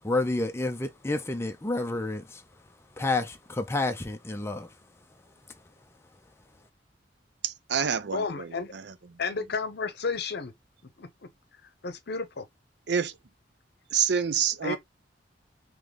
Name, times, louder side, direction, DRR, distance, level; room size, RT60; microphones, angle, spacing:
voice 1, 0.0-2.4 3.0-4.7, left 2 dB, 15° left, 0.5 m, -29 dB
voice 2, 7.4-8.5 8.7-8.8 12.9-13.1 13.9-14.8, right 7 dB, 70° right, 0.6 m, -27 dB
voice 3, 8.1-8.7 9.2-10.5 11.0-11.1 11.8-12.5 14.6-14.8, left 4 dB, 65° left, 0.7 m, -32 dB
3.7 x 3.0 x 3.3 m
head